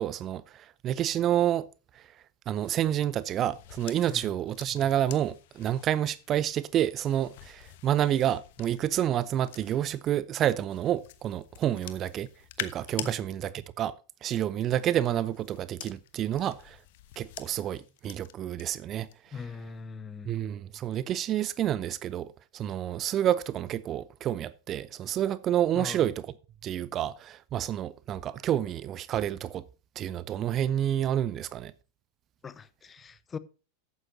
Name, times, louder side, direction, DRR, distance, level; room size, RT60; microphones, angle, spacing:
voice 1, 0.0-1.6 2.5-12.3 12.6-13.9 14.2-16.8 17.2-19.1 20.3-22.3 22.5-26.1 26.6-29.6 30.0-31.7, right 11 dB, 30° right, 0.6 m, -29 dB
sound 1, 2.5-10.1 10.7-13.1 14.4-18.6 19.0-19.4, left 14 dB, 50° left, 1.2 m, -46 dB
voice 2, 19.3-20.3 25.7-26.1 32.4-33.4, left 5 dB, 20° left, 0.8 m, -40 dB
13.5 x 9.6 x 2.7 m
figure-of-eight pair, 90°, 0 cm